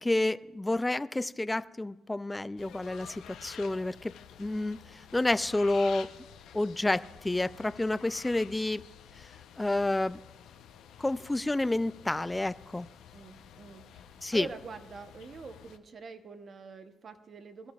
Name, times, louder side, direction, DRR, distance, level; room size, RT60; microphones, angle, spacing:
voice 1, 0.0-4.1 4.4-6.1 6.5-8.8 9.6-10.2 11.0-12.9 14.2-14.5, left 2 dB, 15° left, 17 dB, 0.3 m, -29 dB
sound 1, 2.6-15.8, left 9 dB, 85° left, 0.7 m, -51 dB
voice 2, 13.1-14.1 14.3-17.7, right 5 dB, 50° right, 8 dB, 0.9 m, -45 dB
21.5 x 13.0 x 2.4 m, 1.1 s
cardioid pair, 90°, 0 cm